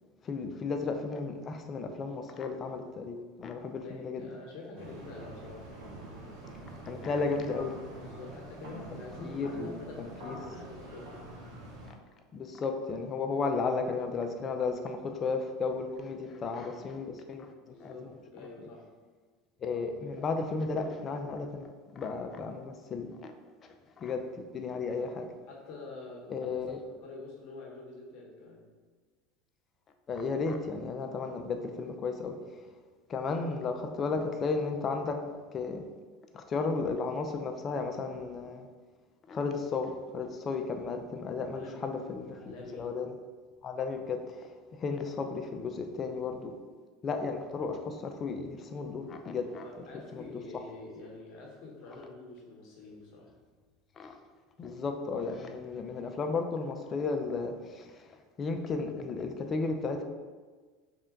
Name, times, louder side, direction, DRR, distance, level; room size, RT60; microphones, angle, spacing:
voice 1, 0.2-4.3 6.9-7.7 9.2-10.4 12.3-17.5 17.8-18.7 19.6-23.3 23.6-24.2 24.5-25.3 26.3-26.8 30.1-32.7 33.1-35.2 35.5-35.8 36.3-38.7 39.3-43.1 43.6-46.5 47.0-49.6 50.1-50.2 54.0-54.2 54.6-60.0, left 4 dB, 35° left, 5 dB, 0.4 m, -34 dB
voice 2, 3.8-6.5 8.0-11.3 17.7-18.9 24.9-25.1 25.5-26.4 26.9-28.7 41.5-41.9 42.3-42.9 49.6-53.3, left 3 dB, 60° left, -2 dB, 1.1 m, -47 dB
sound 1, 4.8-11.9, right 2 dB, 70° right, 0.9 m, -46 dB
3.3 x 2.7 x 3.8 m, 1.4 s
hypercardioid pair, 95°, 0 cm